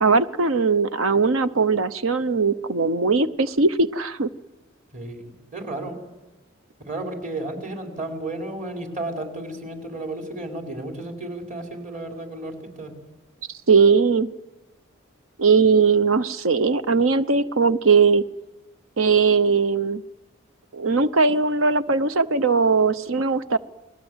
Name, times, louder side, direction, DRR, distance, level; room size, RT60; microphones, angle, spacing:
voice 1, 0.0-4.3 13.7-14.3 15.4-18.2 19.0-20.0 20.7-23.6, right 4 dB, 80° right, 13 dB, 0.9 m, -19 dB
voice 2, 4.9-6.0 6.8-13.0, right 2 dB, 40° right, 3 dB, 5.2 m, -33 dB
29.0 x 20.5 x 8.1 m, 1.1 s
head